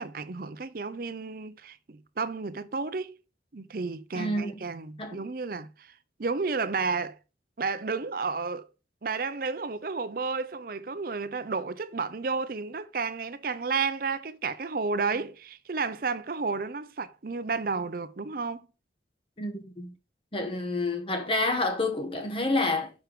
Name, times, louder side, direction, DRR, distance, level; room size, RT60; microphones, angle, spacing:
voice 1, 0.0-3.2 3.5-5.9 6.2-7.2 7.6-8.7 9.0-18.7, right 4 dB, 50° right, 0.6 m, -32 dB
voice 2, 4.1-4.6 5.0-5.2 19.4-19.9 20.3-22.9, left 2 dB, 30° left, 1.1 m, -29 dB
6.4 x 4.6 x 5.0 m
head